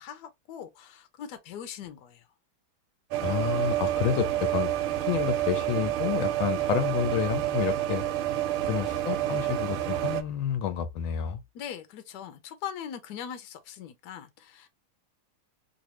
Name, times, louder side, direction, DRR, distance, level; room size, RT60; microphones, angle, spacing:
voice 1, 0.0-2.3 8.6-8.7 11.5-14.7, left 9 dB, 65° left, 1.1 m, -41 dB
sound 1, 3.1-10.2, right 13 dB, 85° right, 1.5 m, -28 dB
voice 2, 3.2-4.7 5.0-8.0 8.7-11.4, left 9 dB, 80° left, 1.4 m, -29 dB
3.4 x 2.6 x 2.9 m
omnidirectional pair, 2.3 m